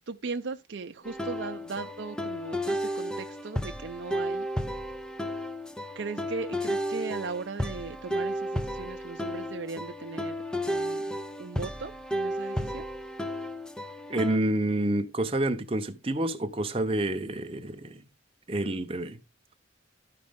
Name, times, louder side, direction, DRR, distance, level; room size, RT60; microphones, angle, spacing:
voice 1, 0.1-4.5 6.0-10.4 10.6-12.9, right 4 dB, 65° right, 0.5 m, -38 dB
sound 1, 1.0-14.4, equal, 5° left, 0.4 m, -33 dB
voice 2, 14.1-18.0 18.5-19.2, right 1 dB, 30° right, 0.8 m, -28 dB
12.5 x 5.2 x 3.6 m
head